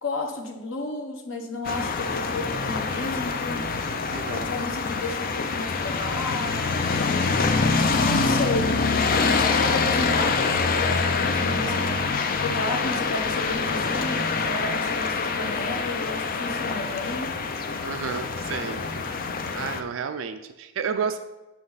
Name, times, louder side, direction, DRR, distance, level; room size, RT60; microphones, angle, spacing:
voice 1, 0.0-3.8 4.3-7.5 8.0-8.8 9.1-12.0 12.4-17.3, left 2 dB, 75° left, 2 dB, 1.1 m, -32 dB
sound 1, 1.6-19.8, left 4 dB, 45° left, 0.5 m, -25 dB
voice 2, 4.1-4.5 17.8-18.8 19.6-21.2, right 6 dB, 70° right, 9 dB, 0.4 m, -31 dB
7.6 x 5.7 x 4.0 m, 1.1 s
head